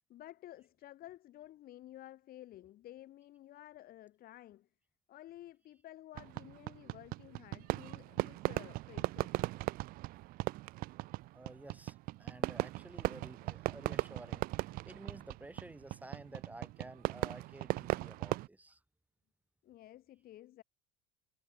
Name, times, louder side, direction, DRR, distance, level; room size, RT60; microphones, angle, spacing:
voice 1, 0.1-4.7 5.1-9.4 19.6-20.6, left 14 dB, 50° left, 3.9 m, -53 dB
Fireworks, 6.2-18.5, right 19 dB, 50° right, 0.4 m, -38 dB
voice 2, 11.3-18.8, right 2 dB, 10° right, 5.3 m, -52 dB
supercardioid pair, 105°, 19 cm